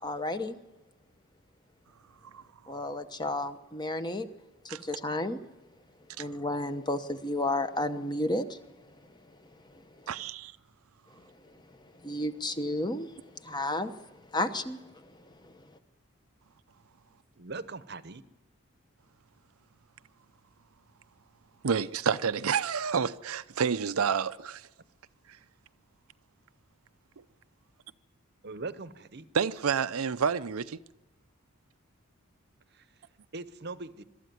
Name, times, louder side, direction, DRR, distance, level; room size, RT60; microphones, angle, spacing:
voice 1, 0.0-0.6 2.7-4.3 4.8-5.4 6.2-8.6 12.0-13.9 14.3-14.8 15.4-15.5, left 1 dB, 20° left, 0.9 m, -32 dB
voice 2, 2.3-2.8 4.7-4.8 6.2-6.3 10.1-10.5 21.6-24.7 25.3-25.4 27.2-27.3 29.3-30.8, right 6 dB, 85° right, 0.6 m, -29 dB
voice 3, 17.4-18.2 28.4-29.3 32.7-32.8 33.3-34.0, right 3 dB, 50° right, 0.8 m, -40 dB
23.0 x 13.0 x 9.4 m
head